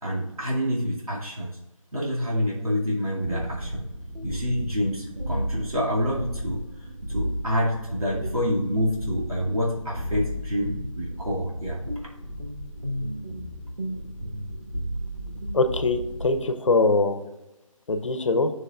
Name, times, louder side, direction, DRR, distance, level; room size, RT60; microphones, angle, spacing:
voice 1, 0.0-1.6 1.9-3.9 4.2-11.8, equal, 85° right, -5 dB, 2.2 m, -27 dB
sound 1, 3.2-16.4, equal, 60° right, 1.9 m, -34 dB
voice 2, 15.5-17.2 17.9-18.5, left 3 dB, 60° left, 10 dB, 0.8 m, -22 dB
9.8 x 6.3 x 2.4 m, 0.99 s
figure-of-eight pair, 155°, 18 cm